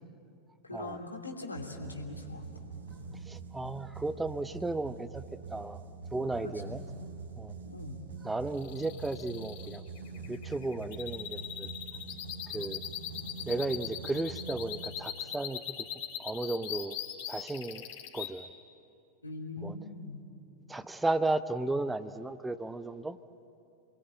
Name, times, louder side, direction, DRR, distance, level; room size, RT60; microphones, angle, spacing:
voice 1, 0.6-2.5 6.4-6.8 7.6-8.0 19.2-20.2, left 2 dB, 80° left, 2 dB, 3.0 m, -41 dB
sound 1, 1.5-15.4, right 5 dB, 70° right, 3.7 m, -45 dB
voice 2, 3.3-5.2 5.5-5.8 6.1-6.8 7.4-7.6 8.2-9.8 10.3-11.7 12.5-12.8 13.5-15.9 16.2-17.0 17.3-17.9 18.1-18.5 19.6-19.7 20.7-23.2, right 2 dB, 10° right, 13 dB, 0.7 m, -34 dB
sound 2, 8.5-18.3, left 11 dB, 50° left, 3.4 m, -40 dB
28.5 x 21.0 x 9.0 m, 2.7 s
figure-of-eight pair, 90°, 0 cm